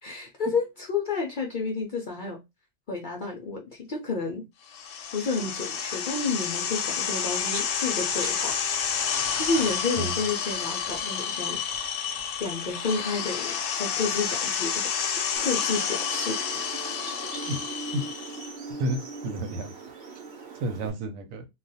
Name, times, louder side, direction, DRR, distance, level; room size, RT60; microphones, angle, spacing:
voice 1, 0.0-2.4 2.9-4.5 5.1-8.5 9.4-11.6 12.4-16.6, left 4 dB, 55° left, 0.5 m, -30 dB
sound 1, 4.7-18.5, left 7 dB, 75° left, 0.9 m, -30 dB
sound 2, 7.2-7.7 8.0-12.9 14.1-14.2, right 1 dB, 25° right, 0.9 m, -42 dB
sound 3, 15.4-20.9, right 4 dB, 60° right, 1.0 m, -40 dB
voice 2, 18.8-19.7 20.6-21.5, right 1 dB, 85° right, 1.1 m, -30 dB
2.4 x 2.3 x 3.9 m
omnidirectional pair, 1.4 m